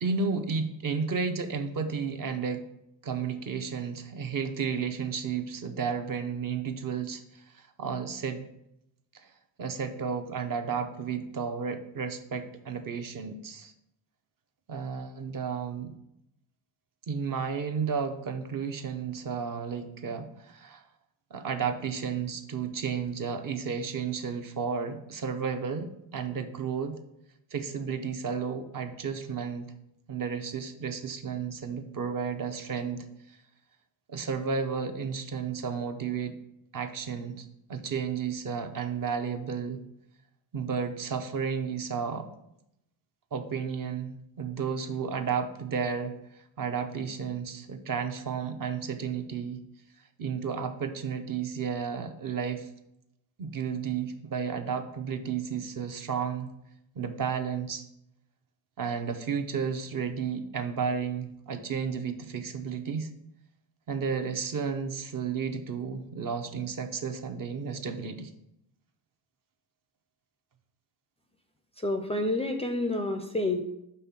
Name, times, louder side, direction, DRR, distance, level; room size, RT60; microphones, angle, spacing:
voice 1, 0.0-2.6 3.0-8.5 9.1-9.3 9.6-13.7 14.7-15.9 17.1-20.8 21.3-26.9 27.5-29.7 30.1-33.4 34.1-36.3 36.7-37.4 37.7-39.8 40.5-42.3 43.3-49.6 50.2-52.7 53.4-56.5 56.9-57.8 58.8-63.1 63.9-68.3, right 6 dB, 45° right, 7 dB, 0.8 m, -32 dB
voice 2, 71.8-73.6, left 2 dB, 15° left, 5 dB, 0.4 m, -28 dB
5.6 x 3.7 x 5.7 m, 0.80 s
cardioid pair, 105°, 47 cm